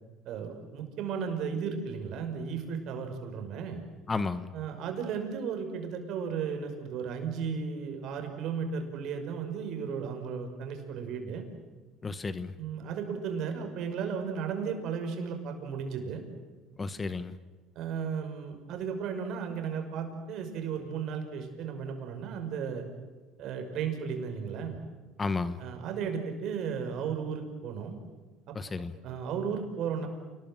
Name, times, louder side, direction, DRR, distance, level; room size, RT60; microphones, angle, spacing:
voice 1, 0.3-3.8 4.5-11.4 12.6-16.2 17.8-22.8 23.4-24.8 25.6-28.0 28.5-28.6 29.0-30.1, right 6 dB, 60° right, 5 dB, 5.6 m, -35 dB
voice 2, 4.1-4.5 12.0-12.5 16.8-17.4 25.2-25.6 28.5-29.0, left 4 dB, 25° left, 13 dB, 1.2 m, -32 dB
28.5 x 20.5 x 7.7 m, 1.3 s
supercardioid pair, 105°, 0 cm